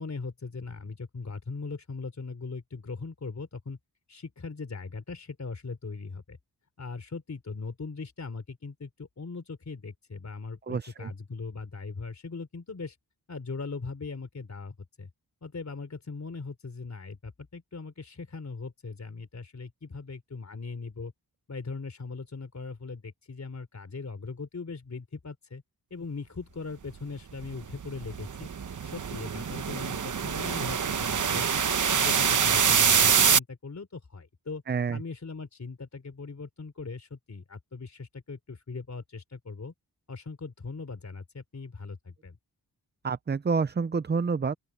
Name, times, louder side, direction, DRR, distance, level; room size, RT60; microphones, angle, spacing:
voice 1, 0.0-3.8 4.1-6.4 6.8-13.0 13.3-15.1 15.4-21.1 21.5-25.6 25.9-28.5 28.8-31.5 31.9-34.6 34.9-39.7 40.1-42.4, left 4 dB, 45° left, 3.8 m, -39 dB
voice 2, 10.7-11.1 34.7-35.0 43.0-44.6, right 5 dB, 25° right, 0.5 m, -28 dB
sound 1, 27.4-33.4, right 7 dB, 50° right, 0.9 m, -25 dB
open air
wide cardioid pair, 105°, 39 cm